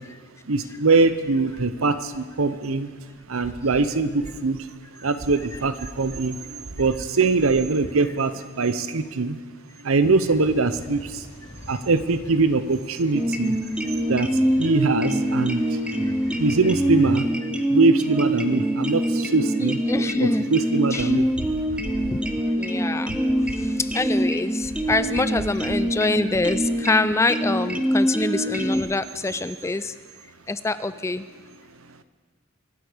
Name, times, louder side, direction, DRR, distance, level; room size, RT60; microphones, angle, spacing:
voice 1, 0.5-2.9 3.3-4.6 5.0-9.4 9.8-11.0 11.7-13.5 14.1-14.3 14.6-15.6 16.4-17.3 17.7-19.8 20.2-21.3, right 3 dB, 85° right, 12 dB, 0.8 m, -22 dB
sound 1, 10.2-17.2, left 1 dB, 65° left, 5.8 m, -41 dB
sound 2, 13.1-28.8, right 1 dB, 5° right, 0.7 m, -24 dB
voice 2, 19.6-20.5 20.9-21.1 22.1-22.3 22.6-23.1 23.6-29.9 30.5-31.3, left 2 dB, 15° left, 14 dB, 0.3 m, -25 dB
24.0 x 8.1 x 5.1 m, 1.5 s
head